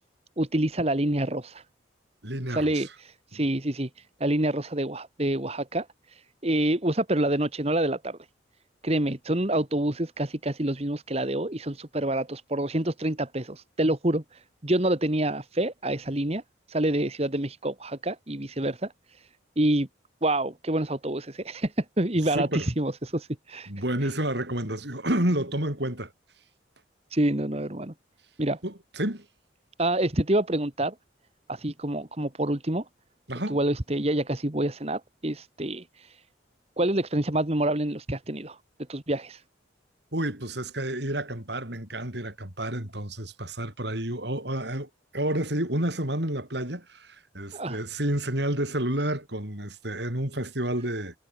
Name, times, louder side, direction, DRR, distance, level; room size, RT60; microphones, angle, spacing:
voice 1, 0.4-1.6 2.5-8.2 8.8-16.4 16.7-19.3 19.6-19.9 20.2-23.7 24.0-24.1 27.1-27.9 28.4-28.6 29.8-30.9 31.5-32.8 33.5-36.2 36.8-38.6 38.9-39.4 47.5-47.8, right 1 dB, 30° right, 1.6 m, -27 dB
voice 2, 2.2-2.9 3.3-3.4 22.3-22.7 23.7-26.1 28.6-29.3 33.3-33.6 40.1-51.1, right 1 dB, 60° right, 5.7 m, -30 dB
head